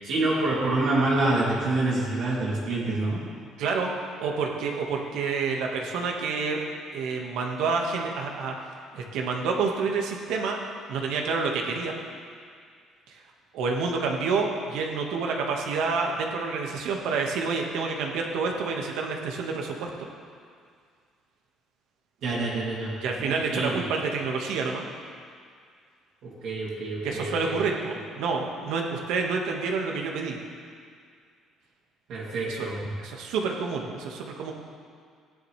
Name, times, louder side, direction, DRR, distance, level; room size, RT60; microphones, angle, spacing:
voice 1, 0.0-3.2 22.2-23.8 26.2-27.6 32.1-32.9, right 2 dB, 60° right, -6 dB, 2.6 m, -27 dB
voice 2, 3.6-3.9 4.2-6.6 6.9-8.5 8.9-10.6 10.9-12.0 13.5-19.9 23.0-24.9 27.0-30.4 32.5-32.7 33.0-34.5, right 4 dB, 75° right, 1 dB, 1.5 m, -28 dB
16.5 x 10.5 x 3.3 m, 2.1 s
cardioid pair, 155°, 0 cm